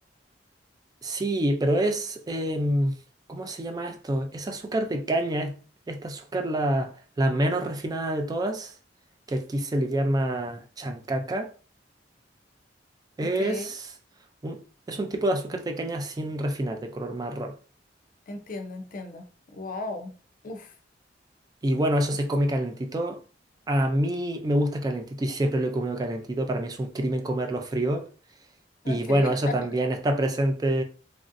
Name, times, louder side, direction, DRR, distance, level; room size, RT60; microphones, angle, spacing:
voice 1, 1.0-2.9 3.3-5.5 5.9-8.7 9.3-11.5 13.2-13.8 14.4-14.6 14.9-17.6 21.6-23.2 23.7-28.1 28.9-30.8, right 1 dB, 20° right, 0.3 m, -27 dB
voice 2, 13.2-13.7 18.3-20.1 20.4-20.7 28.8-29.5, left 2 dB, 50° left, 0.5 m, -36 dB
2.9 x 2.6 x 2.5 m
head